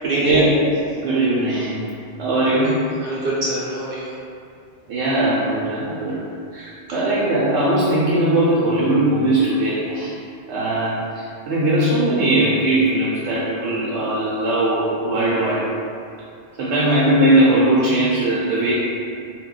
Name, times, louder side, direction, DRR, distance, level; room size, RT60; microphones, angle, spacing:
voice 1, 0.0-0.5 2.5-4.2 6.9-7.1, right 1 dB, 60° right, -6 dB, 0.6 m, -25 dB
voice 2, 1.0-1.9 2.2-2.7 4.9-6.2 6.5-10.1 10.5-15.7 16.6-18.7, right 1 dB, 85° right, -8 dB, 0.9 m, -19 dB
2.3 x 2.2 x 3.7 m, 2.4 s
omnidirectional pair, 1.1 m